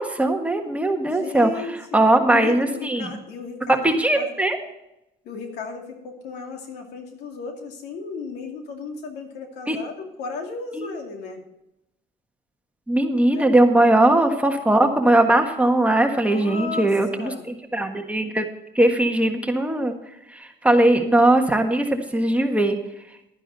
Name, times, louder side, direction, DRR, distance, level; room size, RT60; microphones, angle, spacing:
voice 1, 0.0-1.5 1.9-3.2 3.7-4.6 9.7-9.8 10.8-10.9 12.9-18.4 18.7-19.9 20.3-22.8, right 1 dB, 10° right, 4 dB, 1.5 m, -19 dB
voice 2, 1.1-2.0 2.3-3.9 4.1-4.3 5.2-11.4 13.3-13.5 16.3-17.5, left 5 dB, 85° left, 3 dB, 2.4 m, -35 dB
11.5 x 10.5 x 4.1 m, 0.87 s
cardioid pair, 110°, 17 cm